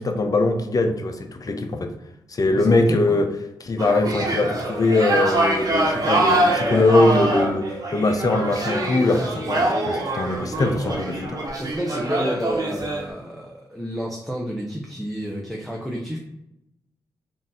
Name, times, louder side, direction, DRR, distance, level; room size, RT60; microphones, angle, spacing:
voice 1, 0.0-1.9 2.3-3.3 3.6-11.4, left 2 dB, 40° left, 6 dB, 0.6 m, -21 dB
voice 2, 2.5-3.2 10.5-10.6 11.6-16.2, equal, ahead, -1 dB, 0.8 m, -30 dB
sound 1, 3.8-13.1, right 1 dB, 40° right, 1.2 m, -24 dB
3.6 x 2.6 x 4.1 m, 0.86 s
supercardioid pair, 45°, 9 cm